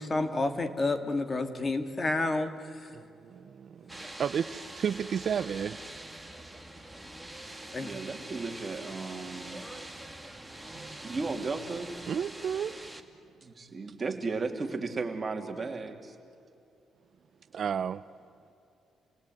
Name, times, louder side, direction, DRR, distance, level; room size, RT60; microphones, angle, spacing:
voice 1, 0.0-3.0 7.7-7.9, left 2 dB, 30° left, 8 dB, 2.1 m, -30 dB
voice 2, 2.9-5.8 12.1-12.7 17.5-18.0, right 8 dB, 55° right, 13 dB, 0.6 m, -32 dB
sound 1, 3.9-13.0, right 1 dB, 5° right, 2.3 m, -44 dB
voice 3, 7.8-9.6 10.7-11.9 13.4-16.2, right 4 dB, 30° right, 3 dB, 3.1 m, -35 dB
29.0 x 19.5 x 9.7 m, 2.7 s
cardioid pair, 90°, 0 cm